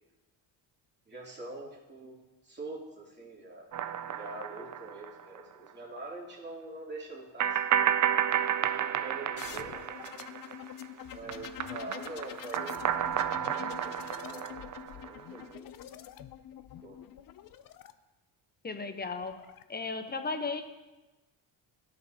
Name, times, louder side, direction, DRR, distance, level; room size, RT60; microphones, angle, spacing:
voice 1, 1.1-2.2 2.4-3.7 4.1-8.0 8.8-10.1 11.1-14.7 15.0-15.7 16.8-17.0, right 2 dB, 20° right, -5 dB, 2.9 m, -45 dB
sound 1, 3.7-5.4 5.7-5.8 7.4-10.9 11.1-15.4, right 9 dB, 40° right, 0.5 m, -31 dB
sound 2, 9.3-17.9 19.0-19.6, left 11 dB, 45° left, 0.5 m, -46 dB
voice 2, 18.6-19.3 19.7-20.6, left 4 dB, 20° left, 7 dB, 0.9 m, -35 dB
14.0 x 5.2 x 2.8 m, 1.1 s
cardioid pair, 85°, 49 cm